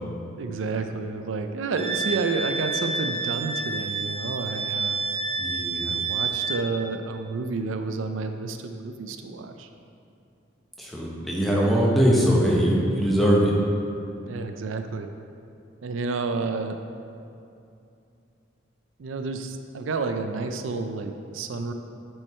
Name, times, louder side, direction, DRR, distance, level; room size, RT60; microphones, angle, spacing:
voice 1, 0.4-5.0 5.8-9.7 14.2-15.1 15.8-16.8 19.0-21.7, right 4 dB, 90° right, 6 dB, 0.4 m, -30 dB
Wind instrument woodwind instrument, 1.8-6.7, right 4 dB, 30° right, 0.4 m, -29 dB
voice 2, 5.4-5.9 10.8-13.5, equal, ahead, -5 dB, 1.0 m, -21 dB
7.5 x 4.7 x 4.3 m, 2.6 s
head